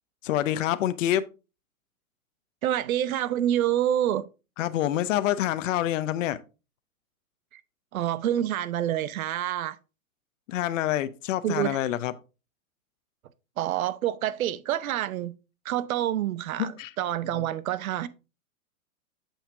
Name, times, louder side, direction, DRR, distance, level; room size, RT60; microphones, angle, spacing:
voice 1, 0.2-1.2 4.6-6.4 10.5-12.1 16.6-16.9 17.3-17.4, left 12 dB, 65° left, 0.8 m, -27 dB
voice 2, 2.6-4.2 7.9-9.8 11.4-11.8 13.6-15.3 15.6-18.1, right 11 dB, 75° right, 0.8 m, -27 dB
7.2 x 5.7 x 3.6 m
hypercardioid pair, 135°, 42 cm